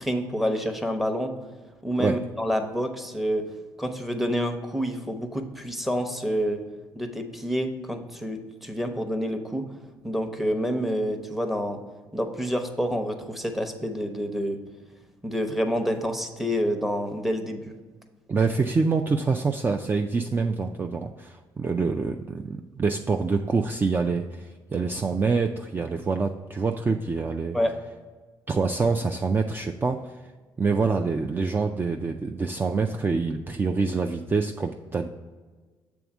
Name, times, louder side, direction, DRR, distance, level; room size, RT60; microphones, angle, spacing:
voice 1, 0.0-1.3 1.8-3.4 3.8-6.6 7.0-9.6 10.0-11.8 12.1-14.6 15.2-17.6 27.5-27.7, equal, ahead, 6 dB, 0.9 m, -28 dB
voice 2, 18.3-27.6 28.5-30.1 30.6-35.1, right 4 dB, 25° right, 4 dB, 0.4 m, -26 dB
7.0 x 3.5 x 6.0 m, 1.4 s
supercardioid pair, 80°, 8 cm